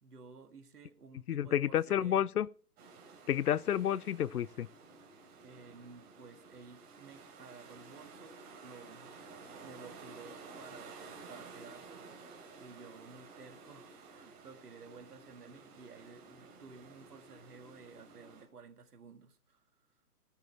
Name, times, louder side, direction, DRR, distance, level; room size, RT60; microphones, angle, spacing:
voice 1, 0.0-2.3 5.4-9.2 9.6-19.9, right 4 dB, 75° right, 1.8 m, -54 dB
voice 2, 1.3-2.5 3.3-4.7, left 10 dB, 70° left, 0.6 m, -30 dB
sound 1, 2.8-18.4, right 4 dB, 20° right, 3.3 m, -53 dB
15.0 x 6.9 x 4.7 m
hypercardioid pair, 140°, 47 cm